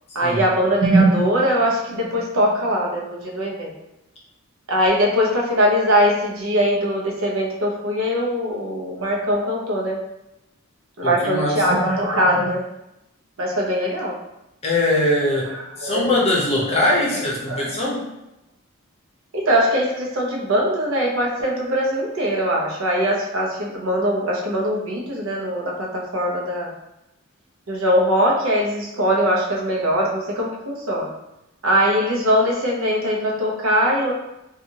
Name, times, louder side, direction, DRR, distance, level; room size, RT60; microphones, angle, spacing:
voice 1, 0.1-3.7 4.7-10.0 11.0-12.6 13.4-14.2 15.8-16.1 16.7-17.0 17.5-17.7 19.3-26.7 27.7-31.1 31.6-34.1, equal, 75° right, -1 dB, 0.7 m, -21 dB
voice 2, 11.0-11.6 14.6-15.5 15.8-18.0, left 1 dB, 30° left, -3 dB, 0.7 m, -21 dB
2.7 x 2.4 x 2.8 m, 0.88 s
head